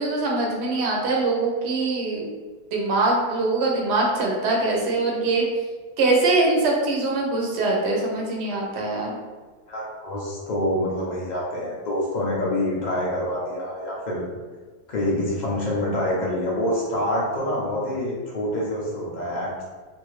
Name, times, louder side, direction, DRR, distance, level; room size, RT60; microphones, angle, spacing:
voice 1, 0.0-2.2 2.7-5.4 6.0-9.2, right 2 dB, 55° right, -2 dB, 0.8 m, -23 dB
voice 2, 9.7-14.2 14.9-19.6, left 1 dB, 85° left, -5 dB, 0.4 m, -26 dB
2.7 x 2.6 x 3.1 m, 1.4 s
omnidirectional pair, 1.7 m